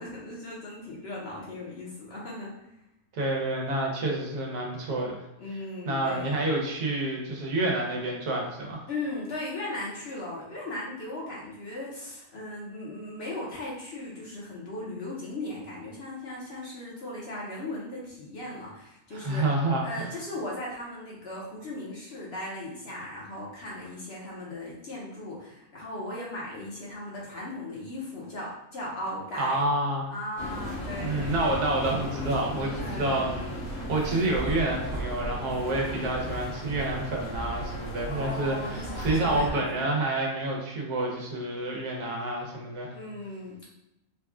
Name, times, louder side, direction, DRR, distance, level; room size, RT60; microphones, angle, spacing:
voice 1, 0.0-2.5 5.4-6.4 8.9-19.4 19.8-29.7 30.1-31.5 32.8-33.3 38.1-39.9 42.9-43.6, left 1 dB, 50° left, -5 dB, 1.0 m, -37 dB
voice 2, 3.1-5.1 5.8-8.8 19.1-20.1 29.4-30.1 31.0-43.0, right 2 dB, 85° right, -1 dB, 1.4 m, -28 dB
sound 1, 30.4-39.5, equal, 70° left, 1.4 m, -35 dB
3.7 x 2.3 x 3.5 m, 0.88 s
omnidirectional pair, 1.6 m